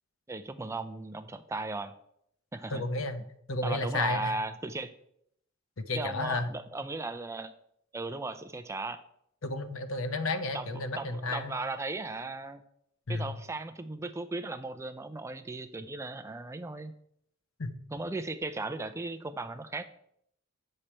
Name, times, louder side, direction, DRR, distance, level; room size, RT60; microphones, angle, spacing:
voice 1, 0.3-1.9 2.5-2.8 3.6-4.9 5.9-7.5 7.9-9.0 10.5-12.6 13.1-16.9 17.9-19.8, right 2 dB, 15° right, 9 dB, 0.4 m, -36 dB
voice 2, 2.7-4.4 5.8-6.5 9.4-11.5 13.1-13.3 17.6-17.7, left 2 dB, 70° left, 9 dB, 0.8 m, -32 dB
8.6 x 6.6 x 4.4 m, 0.71 s
head